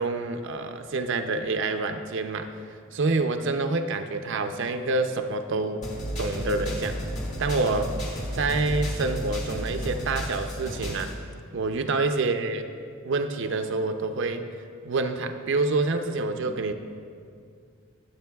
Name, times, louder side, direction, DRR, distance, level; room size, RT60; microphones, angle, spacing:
voice 1, 0.0-2.5 2.9-5.9 6.2-7.1 7.4-7.9 8.3-11.1 11.5-12.6 13.0-14.5 14.8-16.7, right 3 dB, 60° right, 7 dB, 0.5 m, -27 dB
sound 1, 5.8-11.1, equal, 35° left, 1.8 m, -32 dB
18.5 x 7.9 x 2.3 m, 2.2 s
head